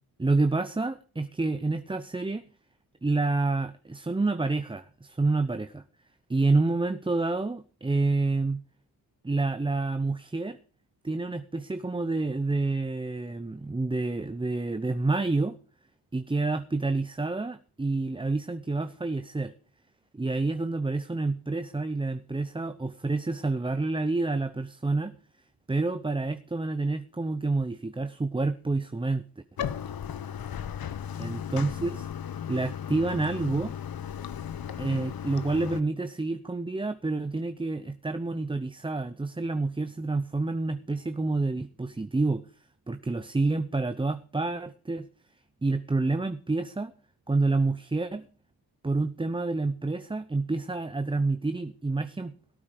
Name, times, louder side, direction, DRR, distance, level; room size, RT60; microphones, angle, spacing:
voice 1, 0.2-2.4 3.0-5.8 6.3-8.6 9.2-10.6 11.0-15.6 16.1-19.5 20.1-25.1 25.7-29.2 31.2-32.1 32.5-33.7 34.8-42.4 42.9-45.1 45.6-46.9 47.3-48.2 48.8-52.3, right 3 dB, 10° right, 10 dB, 0.8 m, -28 dB
Bathtub (filling or washing), 29.6-35.8, left 9 dB, 50° left, 1.1 m, -36 dB
17.5 x 8.8 x 4.9 m, 0.38 s
supercardioid pair, 60°, 47 cm